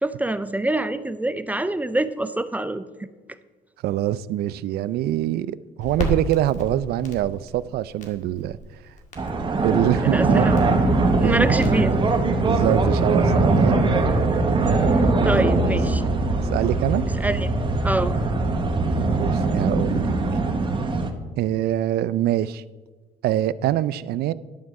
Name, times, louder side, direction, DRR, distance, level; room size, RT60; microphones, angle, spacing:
voice 1, 0.0-3.1 10.0-10.5 11.2-12.0 15.2-16.0 17.1-17.5 17.8-18.1, right 1 dB, 10° right, 0.4 m, -25 dB
voice 2, 3.8-8.6 9.6-10.5 10.8-10.9 11.2-11.5 12.2-13.9 15.3-15.8 16.4-17.0 19.0-20.4 21.4-22.6 23.2-24.3, right 13 dB, 70° right, 0.4 m, -24 dB
Crackle, 5.8-13.1, left 1 dB, 45° left, 2.0 m, -36 dB
sound 1, 9.2-21.1, right 3 dB, 30° right, 1.1 m, -21 dB
11.5 x 4.7 x 7.4 m
cardioid pair, 110°, 17 cm